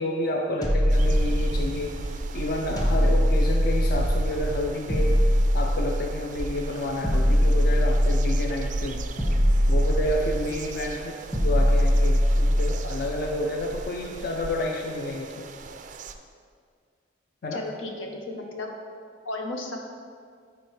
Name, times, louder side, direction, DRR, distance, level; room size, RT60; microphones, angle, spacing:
voice 1, 0.0-5.2 5.5-9.1 9.7-11.2 11.4-15.5 17.4-17.6, left 1 dB, 50° left, 1 dB, 0.4 m, -30 dB
sound 1, 0.6-1.9 2.8-4.4 4.9-6.3 7.0-8.7 9.2-10.6 11.3-12.9, equal, 20° left, 1.0 m, -22 dB
sound 2, 0.9-16.1, right 2 dB, 40° right, 0.3 m, -35 dB
voice 2, 17.5-18.7 19.2-19.8, left 2 dB, 90° left, 2 dB, 0.9 m, -34 dB
11.0 x 4.2 x 3.2 m, 2.1 s
head